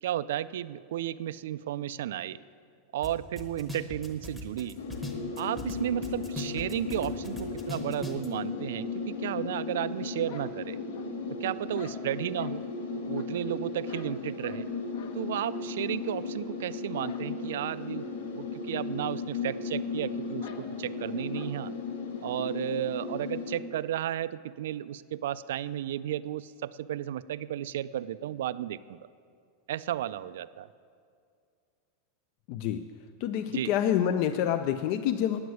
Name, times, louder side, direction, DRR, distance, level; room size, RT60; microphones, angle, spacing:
voice 1, 0.0-2.4 2.9-4.8 5.4-10.8 11.4-12.6 13.1-14.7 15.1-18.1 18.3-21.7 22.2-29.0 29.7-30.7 33.5-33.7, right 12 dB, 75° right, 16 dB, 0.3 m, -33 dB
sound 1, 3.0-3.1 3.4-5.8 6.0-8.3, equal, ahead, 1.0 m, -39 dB
sound 2, 4.8-23.6, left 4 dB, 90° left, 1.3 m, -36 dB
sound 3, 10.3-11.3 11.7-12.6 13.1-14.7 14.9-15.2 15.5-15.7 16.0-16.1 17.0-17.3 17.6-17.7 18.1-18.2 19.0-19.1 19.4-19.5 20.4-20.7 21.3-21.5, left 6 dB, 55° left, 1.0 m, -50 dB
voice 2, 32.5-32.8 33.2-35.4, left 10 dB, 40° left, 8 dB, 0.3 m, -27 dB
9.3 x 7.9 x 9.2 m, 2.3 s
supercardioid pair, 175°, 0 cm